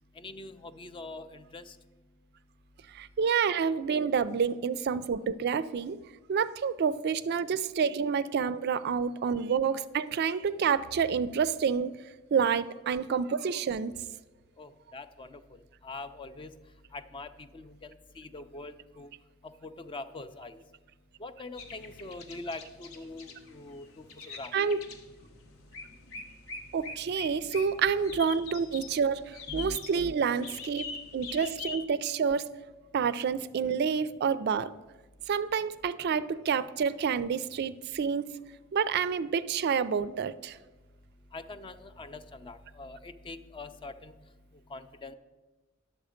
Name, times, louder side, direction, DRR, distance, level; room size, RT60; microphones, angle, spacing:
voice 1, 0.2-1.8 14.6-15.4 15.8-16.5 16.9-19.1 19.4-20.6 21.2-24.5 29.5-30.1 41.3-44.1 44.7-45.1, left 2 dB, 25° left, 11 dB, 0.4 m, -43 dB
voice 2, 2.9-6.0 6.3-12.0 12.3-13.9 24.3-24.8 26.7-30.9 31.1-32.5 32.9-34.7 35.3-38.2 38.7-40.6, right 6 dB, 50° right, 15 dB, 0.3 m, -28 dB
sound 1, 21.6-31.8, left 4 dB, 80° left, 1.0 m, -44 dB
10.0 x 7.0 x 5.0 m, 1.2 s
head